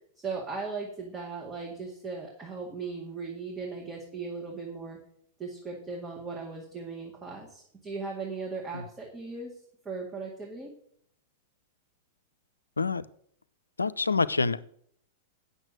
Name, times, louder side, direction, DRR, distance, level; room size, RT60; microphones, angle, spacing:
voice 1, 0.2-5.0 5.4-9.6 9.9-10.7, right 4 dB, 20° right, -1 dB, 1.9 m, -38 dB
voice 2, 13.8-14.8, left 4 dB, 85° left, 17 dB, 0.4 m, -27 dB
8.8 x 6.7 x 6.3 m, 0.65 s
figure-of-eight pair, 100°, 0 cm